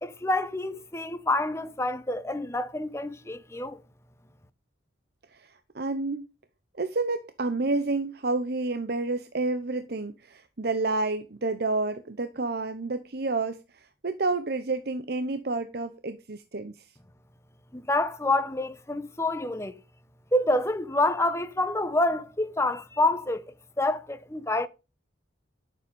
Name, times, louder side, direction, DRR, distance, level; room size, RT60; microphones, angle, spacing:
voice 1, 0.0-3.8 17.7-19.8 20.3-23.4 23.8-24.7, left 2 dB, 15° left, 0.9 m, -27 dB
voice 2, 5.3-6.2 6.8-16.9, right 3 dB, 55° right, 0.9 m, -30 dB
11.5 x 7.4 x 5.4 m
head